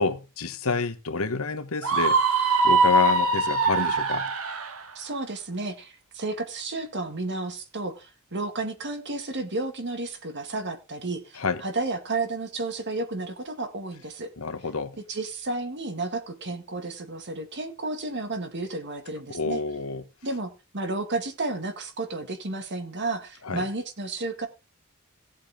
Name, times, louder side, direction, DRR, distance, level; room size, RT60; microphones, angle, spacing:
voice 1, 0.0-2.2 2.6-4.3 11.4-11.6 14.4-15.0 19.3-20.0 23.5-23.6, left 4 dB, 75° left, 1.1 m, -28 dB
Screaming, 1.8-4.8, right 3 dB, 90° right, 1.8 m, -22 dB
voice 2, 5.0-14.3 15.1-19.6 20.2-24.5, right 2 dB, 55° right, 1.9 m, -32 dB
16.5 x 7.8 x 3.7 m
head